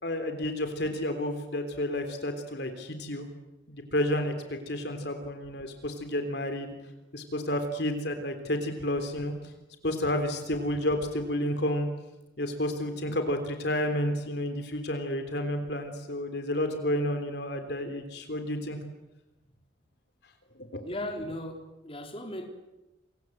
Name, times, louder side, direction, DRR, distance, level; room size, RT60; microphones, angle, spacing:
voice 1, 0.0-3.3 3.7-6.7 7.1-9.3 9.8-11.9 12.4-18.8 20.7-20.8, left 1 dB, 60° left, 7 dB, 3.5 m, -31 dB
voice 2, 20.8-22.5, left 1 dB, 30° left, 3 dB, 4.0 m, -37 dB
29.0 x 24.5 x 8.0 m, 0.96 s
head